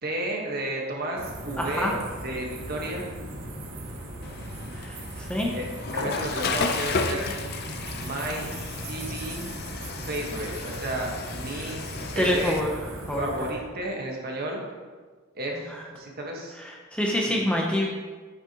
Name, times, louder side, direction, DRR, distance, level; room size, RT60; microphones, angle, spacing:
voice 1, 0.0-3.1 5.5-5.7 5.9-7.2 8.0-8.4 8.8-9.4 10.0-11.8 12.1-12.6 13.1-14.6 15.3-15.6 15.9-16.6 17.3-17.4, right 1 dB, 50° right, -1 dB, 1.4 m, -32 dB
sound 1, 1.2-13.5, right 1 dB, 85° right, 1.4 m, -38 dB
voice 2, 1.6-2.0 4.8-4.9 5.2-5.5 11.5-11.7 12.2-12.7 13.1-13.3 16.9-17.9, left 1 dB, 5° left, -2 dB, 0.7 m, -25 dB
Water / Toilet flush, 4.2-12.6, left 4 dB, 50° left, 0.5 m, -33 dB
8.2 x 6.4 x 2.9 m, 1.4 s
head